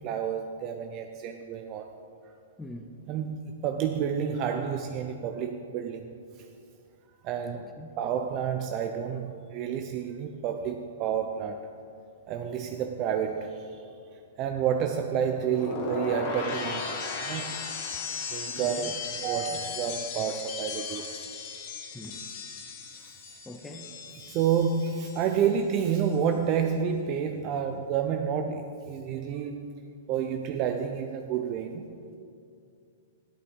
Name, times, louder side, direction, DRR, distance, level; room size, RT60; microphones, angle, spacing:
voice 1, 0.0-1.9 3.1-6.1 7.2-7.7 8.0-11.7 12.3-13.9 14.4-16.9 17.2-17.5 18.3-21.1 24.1-31.9, right 7 dB, 30° right, 5 dB, 0.6 m, -30 dB
voice 2, 2.6-2.9 7.5-7.9 18.6-19.0 21.9-22.2 23.4-23.9, left 1 dB, 5° left, 4 dB, 0.8 m, -43 dB
sound 1, 15.4-25.5 25.7-26.2, left 4 dB, 35° left, 2.0 m, -37 dB
13.5 x 11.5 x 5.4 m, 2.5 s
hypercardioid pair, 155°, 0 cm